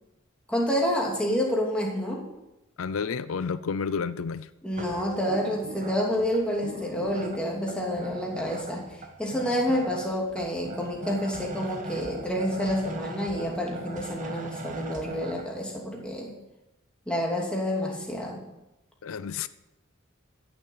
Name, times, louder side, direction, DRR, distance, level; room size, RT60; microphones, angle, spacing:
voice 1, 0.5-2.2 4.6-8.9 9.2-16.3 17.1-18.4, equal, 5° left, -2 dB, 2.8 m, -28 dB
voice 2, 2.8-4.5 19.0-19.5, left 5 dB, 80° left, 15 dB, 0.5 m, -30 dB
sound 1, 4.7-15.4, right 2 dB, 40° right, 1.5 m, -40 dB
14.0 x 7.2 x 8.5 m, 0.95 s
head